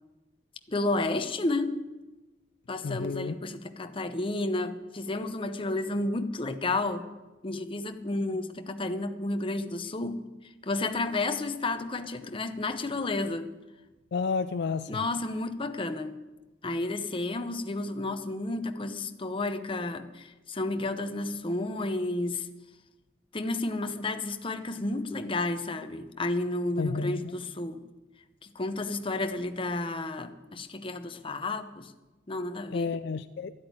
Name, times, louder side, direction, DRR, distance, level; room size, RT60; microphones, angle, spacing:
voice 1, 0.7-1.8 2.7-7.1 7.4-10.2 10.6-13.5 14.9-16.2 16.6-22.5 23.3-27.8 28.4-31.9 32.3-32.9, left 2 dB, 30° left, 8 dB, 0.8 m, -31 dB
voice 2, 2.8-3.3 14.1-14.9 26.8-27.3 32.7-33.5, left 4 dB, 60° left, 12 dB, 0.4 m, -31 dB
12.5 x 8.6 x 9.5 m, 1.1 s
head